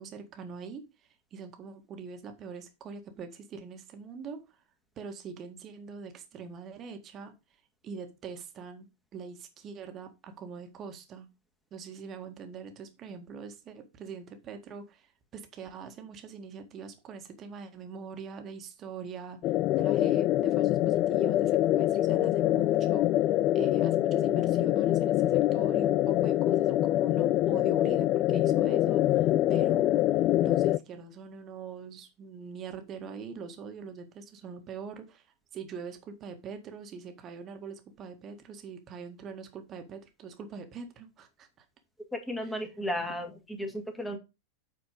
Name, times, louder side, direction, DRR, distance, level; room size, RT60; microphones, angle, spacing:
voice 1, 0.0-4.6 4.9-7.3 7.8-11.3 11.7-19.4 19.8-23.1 23.5-30.0 30.4-35.3 35.5-41.5 42.4-42.7, right 6 dB, 30° right, 6 dB, 1.7 m, -43 dB
sound 1, 19.4-30.8, left 14 dB, 35° left, 0.3 m, -25 dB
voice 2, 42.1-44.2, equal, 5° left, 4 dB, 2.0 m, -34 dB
8.4 x 4.3 x 5.1 m, 0.26 s
figure-of-eight pair, 90°, 0 cm